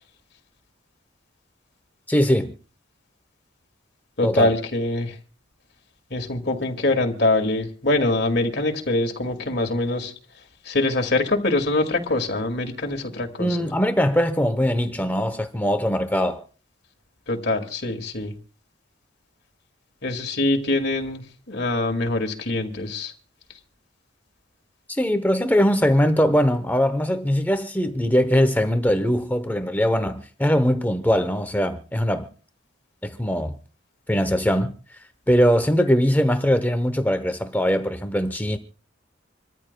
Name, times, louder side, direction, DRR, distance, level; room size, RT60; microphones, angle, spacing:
voice 1, 2.1-2.5 4.2-4.5 13.4-16.4 24.9-32.3 33.0-33.6 34.1-34.7 35.3-38.6, equal, 10° left, 0.7 m, -21 dB
voice 2, 4.2-5.1 6.1-10.1 10.7-13.6 17.3-18.3 20.0-23.1, left 2 dB, 55° left, 2.1 m, -24 dB
27.0 x 13.5 x 2.2 m
head